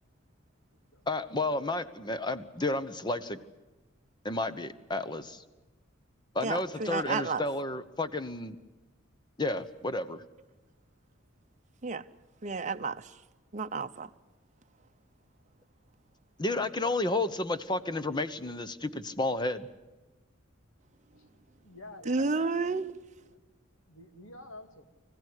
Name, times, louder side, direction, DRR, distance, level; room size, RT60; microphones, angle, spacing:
voice 1, 1.1-3.4 4.2-5.4 6.3-8.6 9.4-10.2 16.4-19.7, left 2 dB, 20° left, 1.0 m, -31 dB
voice 2, 6.4-7.4 11.8-12.0 12.4-13.0 13.5-14.1 22.1-22.9, right 4 dB, 35° right, 0.8 m, -31 dB
voice 3, 21.6-22.6 23.2-23.4 23.9-24.8, left 2 dB, 85° left, 2.4 m, -49 dB
25.5 x 16.0 x 9.8 m
head